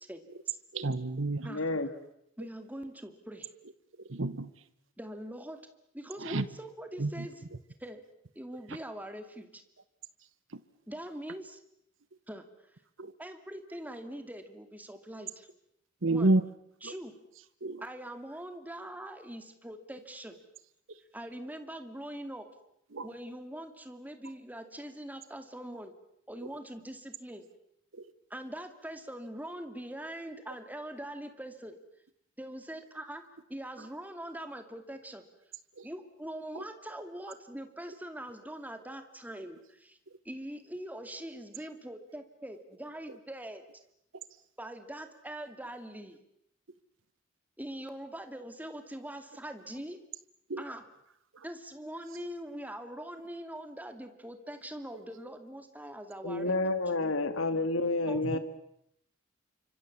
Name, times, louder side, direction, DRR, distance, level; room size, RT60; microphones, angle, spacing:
voice 1, 0.1-0.6 1.4-1.7 2.4-3.5 5.0-5.6 5.9-7.5 7.8-8.0 8.4-9.6 10.9-11.6 12.3-12.4 13.2-15.5 16.1-16.3 16.8-17.1 17.8-20.4 21.1-22.5 23.0-25.9 26.3-27.4 28.3-31.8 32.4-33.2 33.5-35.2 35.8-40.0 40.2-43.6 44.6-46.2 47.6-50.0 50.6-50.9 51.4-56.5 58.1-58.4, right 1 dB, 10° right, 7 dB, 2.4 m, -42 dB
voice 2, 0.7-1.5 4.1-4.5 6.2-6.4 7.0-7.3 13.0-13.1 16.0-16.4 16.8-16.9 17.6-17.8 22.9-23.1 50.5-50.6, right 2 dB, 70° right, 14 dB, 1.2 m, -29 dB
voice 3, 1.5-1.9 56.2-58.4, left 2 dB, 75° left, 10 dB, 2.4 m, -29 dB
29.0 x 25.0 x 7.3 m, 0.75 s
head